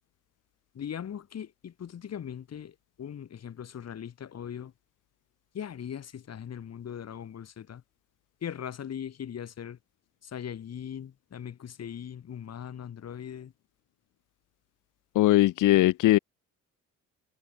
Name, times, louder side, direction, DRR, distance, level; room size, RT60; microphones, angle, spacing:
voice 1, 0.8-4.7 5.5-7.8 8.4-9.8 10.2-13.5, left 9 dB, 55° left, 5.2 m, -39 dB
voice 2, 15.1-16.2, left 16 dB, 90° left, 3.1 m, -20 dB
cardioid pair, 90°, 30 cm